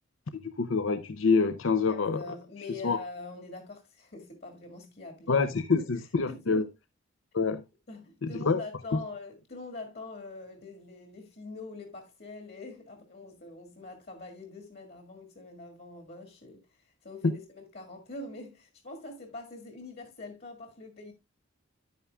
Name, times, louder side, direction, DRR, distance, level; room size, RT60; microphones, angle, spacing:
voice 1, 0.4-2.2 2.8-3.0 5.3-6.6 7.3-7.6 8.2-8.6, left 4 dB, 75° left, 0.6 m, -26 dB
voice 2, 1.9-6.7 7.9-21.1, left 3 dB, 50° left, 1.9 m, -44 dB
11.0 x 9.1 x 2.3 m
head